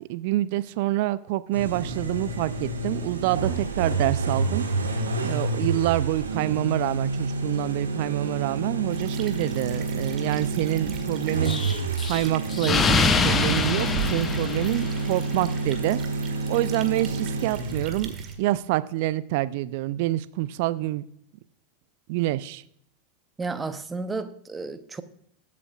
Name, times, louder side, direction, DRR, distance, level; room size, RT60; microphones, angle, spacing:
voice 1, 0.1-4.6 5.2-11.6 12.0-16.0 16.5-21.0 22.1-22.6, right 16 dB, 55° right, 0.5 m, -27 dB
sound 1, 1.5-18.3, right 3 dB, 75° right, 1.7 m, -29 dB
sound 2, 8.9-18.3, right 8 dB, 30° right, 1.6 m, -41 dB
Explosion, 11.5-15.3, left 5 dB, 25° left, 0.9 m, -25 dB
voice 2, 23.4-25.0, right 3 dB, 15° right, 0.9 m, -32 dB
21.0 x 8.4 x 2.4 m
figure-of-eight pair, 85°, 0 cm